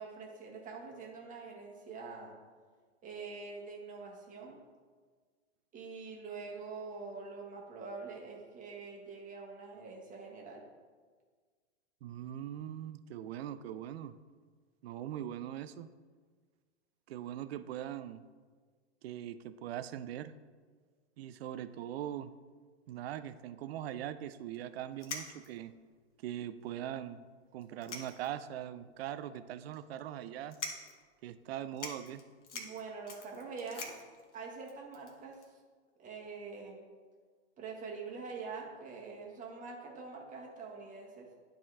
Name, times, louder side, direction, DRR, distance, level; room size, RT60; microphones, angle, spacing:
voice 1, 0.0-2.3 3.0-4.6 5.7-10.6 32.5-33.9 34.3-35.5 36.0-36.8 37.6-41.3, right 4 dB, 20° right, -1 dB, 1.5 m, -45 dB
voice 2, 12.0-14.2 14.8-15.9 17.1-18.2 19.0-20.3 21.2-22.3 22.9-25.7 26.2-27.2 27.5-30.6 31.2-32.2, right 11 dB, 60° right, 13 dB, 0.5 m, -41 dB
sound 1, 24.5-24.6 25.0-25.7 26.3-26.4 26.7-26.8 27.6-28.5 28.9-29.0 29.7-30.0 30.5-31.0 31.4-31.5 31.7-35.4, left 3 dB, 80° left, 1.4 m, -44 dB
10.5 x 4.3 x 3.6 m, 1.5 s
hypercardioid pair, 110°, 35 cm